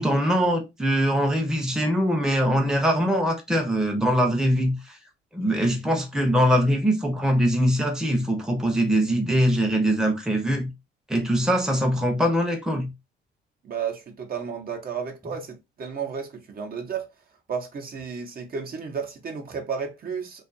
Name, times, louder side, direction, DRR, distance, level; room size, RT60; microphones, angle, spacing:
voice 1, 0.0-4.9 5.3-10.7 11.1-12.9, equal, 5° right, 0.7 m, -22 dB
voice 2, 13.6-17.1 17.5-20.4, right 6 dB, 50° right, 0.8 m, -32 dB
2.5 x 2.4 x 2.5 m
cardioid pair, 90°, 20 cm